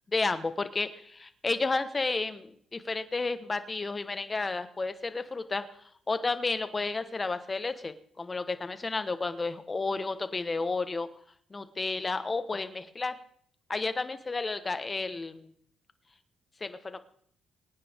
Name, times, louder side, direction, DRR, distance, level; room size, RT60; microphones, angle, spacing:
voice 1, 0.1-5.7 6.1-11.1 11.5-13.1 13.7-15.5 16.6-17.0, left 3 dB, 25° left, 11 dB, 1.3 m, -32 dB
23.0 x 9.7 x 3.6 m, 0.62 s
cardioid pair, 90°, 0 cm